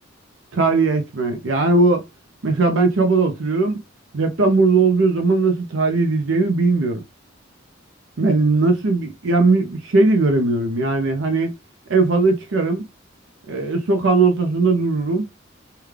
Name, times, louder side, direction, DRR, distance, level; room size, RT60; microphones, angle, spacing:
voice 1, 0.5-2.0 2.4-3.8 4.1-7.0 8.2-11.5 11.9-12.8 13.5-15.2, right 3 dB, 70° right, 0.6 m, -18 dB
3.5 x 2.2 x 3.2 m
head